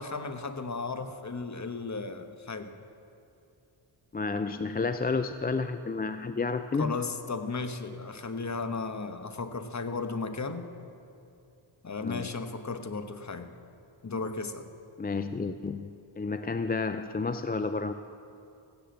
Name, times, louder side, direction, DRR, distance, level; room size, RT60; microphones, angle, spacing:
voice 1, 0.0-2.7 6.8-10.7 11.8-13.5 14.0-14.7, left 4 dB, 35° left, 9 dB, 1.2 m, -35 dB
voice 2, 4.1-7.0 12.0-12.3 15.0-15.9 16.2-17.9, left 4 dB, 20° left, 10 dB, 0.4 m, -31 dB
15.5 x 10.5 x 7.8 m, 2.7 s
cardioid pair, 65°, 49 cm